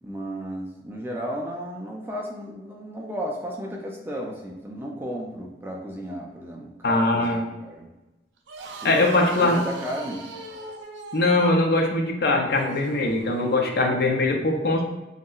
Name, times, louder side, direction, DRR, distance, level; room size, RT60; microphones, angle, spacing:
voice 1, 0.0-7.9 8.8-10.2, equal, 10° right, -1 dB, 0.3 m, -34 dB
voice 2, 6.8-7.4 8.8-9.6 11.1-14.8, left 2 dB, 55° left, 3 dB, 0.4 m, -21 dB
sound 1, 8.4-14.0, right 3 dB, 85° right, 0.4 m, -39 dB
3.1 x 2.8 x 2.3 m, 1.1 s
head